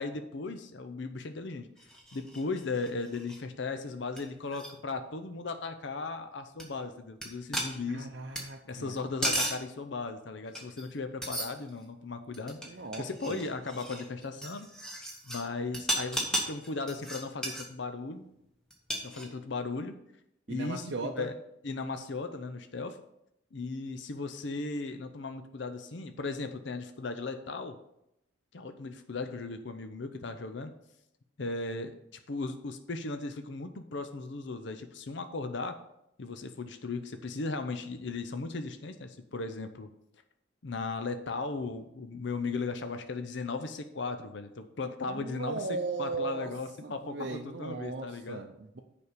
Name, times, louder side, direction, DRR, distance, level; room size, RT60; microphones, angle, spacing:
voice 1, 0.0-1.7 2.1-8.1 8.7-12.6 13.0-14.7 15.2-18.2 19.0-19.9 20.5-21.3 21.6-23.0 23.5-27.8 28.5-30.7 31.4-35.8 36.2-39.9 40.6-48.4, left 3 dB, 65° left, 8 dB, 0.6 m, -37 dB
sound 1, 1.8-3.4 3.9-4.0 4.2-4.3 4.5-4.7 6.6-6.7 7.2-7.3 7.5-8.4 8.9-9.6 10.5-11.0 11.2-11.8 12.3-15.4 15.7-17.7 18.7-19.5, right 1 dB, 5° left, 1.2 m, -35 dB
voice 2, 7.9-8.9 12.6-13.5 20.5-21.3 45.1-46.5 46.8-48.8, right 3 dB, 55° right, 1 dB, 0.6 m, -37 dB
7.0 x 5.2 x 6.6 m, 0.80 s
head